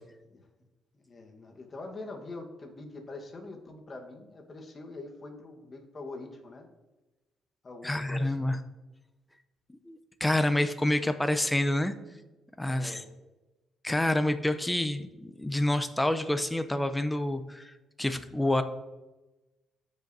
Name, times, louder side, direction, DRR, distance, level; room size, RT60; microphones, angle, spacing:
voice 1, 0.9-6.7 7.6-8.4 12.7-13.1, left 2 dB, 35° left, 2 dB, 1.3 m, -44 dB
voice 2, 7.8-8.6 9.9-11.9 12.6-13.0 13.8-18.6, left 1 dB, 10° left, 9 dB, 0.6 m, -28 dB
13.5 x 5.2 x 2.7 m, 1.1 s
cardioid pair, 90°, 0 cm